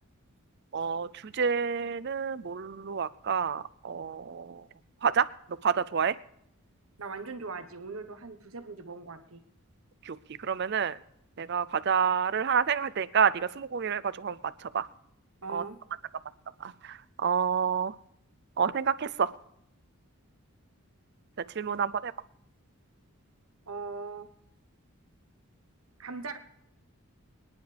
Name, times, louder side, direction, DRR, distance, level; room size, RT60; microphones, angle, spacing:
voice 1, 0.7-4.7 5.0-5.3 5.6-6.2 10.0-11.0 11.4-14.9 15.5-15.6 16.6-17.9 18.6-19.3 21.5-22.1, right 6 dB, 50° right, 15 dB, 0.5 m, -29 dB
voice 2, 7.0-9.4 15.4-15.8 23.7-24.3 26.0-26.4, right 4 dB, 70° right, 9 dB, 1.2 m, -40 dB
24.0 x 10.5 x 3.4 m, 0.75 s
head